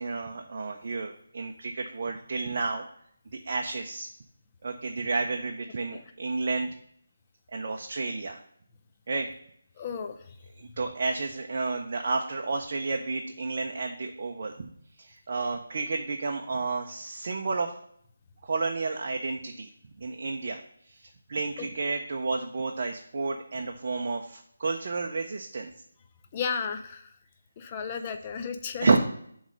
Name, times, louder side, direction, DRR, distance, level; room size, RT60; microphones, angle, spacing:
voice 1, 0.0-2.8 3.5-4.1 4.6-6.7 7.5-8.4 9.1-9.3 10.6-14.7 15.0-17.7 18.4-19.7 20.0-20.6 20.9-21.0 21.3-25.7 28.8-29.0, right 3 dB, 45° right, 2 dB, 0.6 m, -31 dB
voice 2, 9.8-10.2 21.6-21.7 26.3-27.1 27.6-28.9, left 6 dB, 25° left, 6 dB, 0.5 m, -33 dB
7.4 x 3.1 x 5.1 m, 0.67 s
figure-of-eight pair, 170°, 0 cm